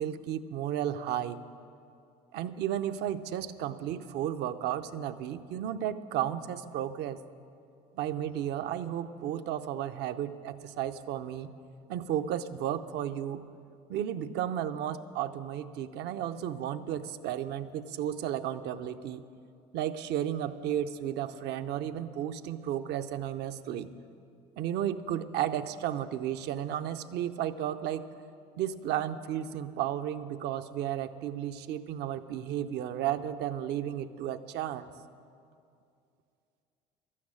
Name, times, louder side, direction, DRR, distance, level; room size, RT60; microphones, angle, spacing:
voice 1, 0.0-1.4 2.3-7.2 7.9-11.5 11.9-13.5 13.9-19.2 19.7-23.9 24.6-28.0 28.6-34.9, right 10 dB, 60° right, 10 dB, 0.7 m, -33 dB
12.5 x 8.6 x 8.6 m, 2.5 s
hypercardioid pair, 70°, 19 cm